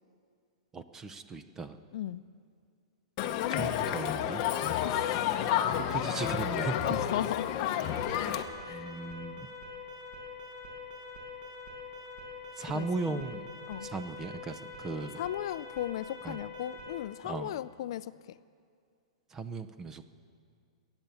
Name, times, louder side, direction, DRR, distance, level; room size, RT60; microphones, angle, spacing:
voice 1, 0.7-1.8 3.5-4.4 5.7-7.0 8.7-9.5 12.6-13.5 13.8-15.2 16.2-16.4 17.2-17.5 19.3-20.1, right 3 dB, 15° right, 12 dB, 0.5 m, -37 dB
voice 2, 1.9-2.2 4.8-5.5 6.8-7.7 8.6-8.9 12.7-13.2 13.7-13.9 15.2-18.1, left 12 dB, 50° left, 16 dB, 0.3 m, -36 dB
Crowd, 3.2-8.4, left 10 dB, 30° left, 0.7 m, -30 dB
Alarm, 7.8-17.0, left 3 dB, 35° right, 4.7 m, -45 dB
21.5 x 9.0 x 7.0 m, 2.2 s
hypercardioid pair, 165°, 3 cm